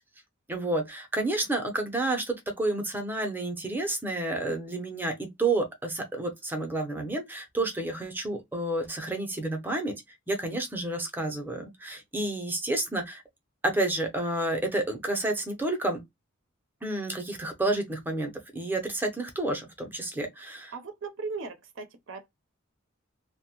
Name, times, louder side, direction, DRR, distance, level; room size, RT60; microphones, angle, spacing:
voice 1, 0.5-9.9 10.3-13.2 13.6-16.0 16.8-20.7, right 2 dB, 10° right, 0.6 m, -30 dB
voice 2, 20.7-22.3, right 4 dB, 65° right, 0.5 m, -38 dB
2.6 x 2.1 x 2.8 m
head